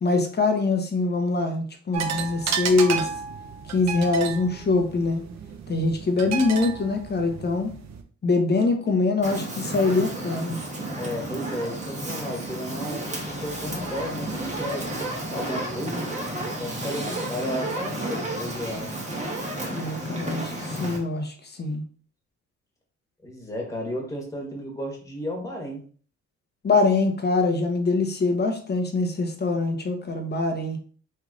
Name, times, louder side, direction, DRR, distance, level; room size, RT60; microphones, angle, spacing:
voice 1, 0.0-3.1 3.7-5.2 5.7-7.7 8.2-10.6 19.7-21.8 26.6-30.8, left 3 dB, 35° left, 4 dB, 1.0 m, -24 dB
sound 1, 1.9-8.0, right 6 dB, 65° right, 0.7 m, -32 dB
Fire, 9.2-21.0, right 1 dB, 25° right, 1.4 m, -32 dB
voice 2, 11.0-16.1 16.6-19.0 23.2-25.8, equal, 10° left, -1 dB, 1.7 m, -34 dB
3.4 x 3.2 x 3.8 m, 0.42 s
cardioid pair, 90°, 30 cm